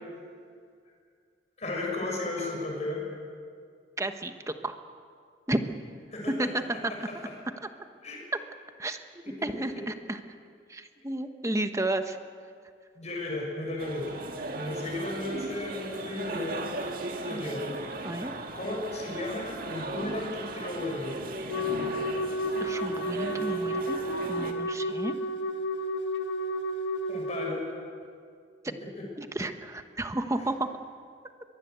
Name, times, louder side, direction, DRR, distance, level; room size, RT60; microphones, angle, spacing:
voice 1, 1.6-3.0 6.1-6.3 8.0-8.3 12.9-14.0 14.5-16.6 17.2-17.6 18.5-21.1 27.1-27.6, left 2 dB, 40° left, -1 dB, 6.8 m, -34 dB
voice 2, 4.0-4.8 5.5-5.6 6.4-7.1 8.8-10.2 10.7-12.2 17.3-17.6 18.0-18.3 22.6-24.0 24.3-25.1 29.1-30.7, right 1 dB, 15° right, 8 dB, 1.1 m, -32 dB
sound 1, 13.8-24.5, right 2 dB, 50° right, 2.0 m, -37 dB
Wind instrument woodwind instrument, 21.5-27.6, equal, 75° left, 1.4 m, -31 dB
23.0 x 20.0 x 8.2 m, 2.2 s
head